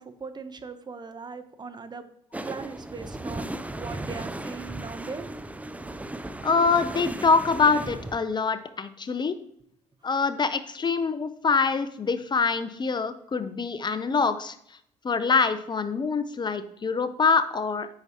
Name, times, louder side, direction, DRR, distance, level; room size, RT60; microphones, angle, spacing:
voice 1, 0.0-2.0 2.5-5.3, right 5 dB, 30° right, 9 dB, 0.9 m, -39 dB
sound 1, 2.3-8.2, right 1 dB, 10° right, 0.5 m, -36 dB
voice 2, 6.4-9.4 10.0-14.5 15.0-17.9, left 4 dB, 35° left, 12 dB, 0.6 m, -25 dB
8.7 x 6.0 x 2.9 m, 0.70 s
hypercardioid pair, 55°, 14 cm